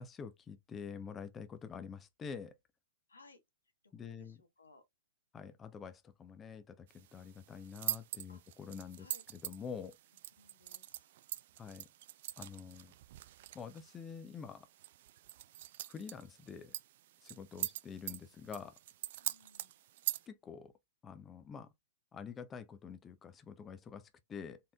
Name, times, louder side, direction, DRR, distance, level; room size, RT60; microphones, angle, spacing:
voice 1, 0.0-2.5 3.9-4.4 5.3-9.1 9.3-10.0 11.6-11.9 12.4-12.9 13.5-14.7 15.9-16.7 17.2-18.8 20.3-20.7 21.0-21.7 22.1-24.6, left 6 dB, 20° left, 0.5 m, -47 dB
voice 2, 3.1-3.4 3.8-4.8 8.3-8.4 9.0-9.2 10.4-11.1 17.5-17.7 19.2-19.8, left 3 dB, 85° left, 1.2 m, -62 dB
sound 1, 6.9-20.3, right 14 dB, 55° right, 0.3 m, -44 dB
4.1 x 3.6 x 2.3 m
figure-of-eight pair, 115°, 0 cm